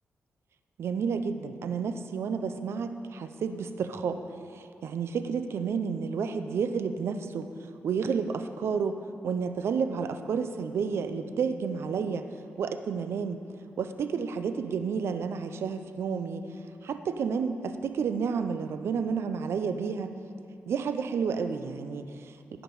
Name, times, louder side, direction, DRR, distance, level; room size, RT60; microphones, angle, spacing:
voice 1, 0.8-4.2 4.5-7.5 7.8-9.0 9.2-12.3 12.6-13.4 13.8-16.5 16.8-20.1 20.7-22.6, right 6 dB, 80° right, 9 dB, 0.5 m, -31 dB
14.5 x 5.1 x 4.8 m, 2.5 s
cardioid pair, 80°, 4 cm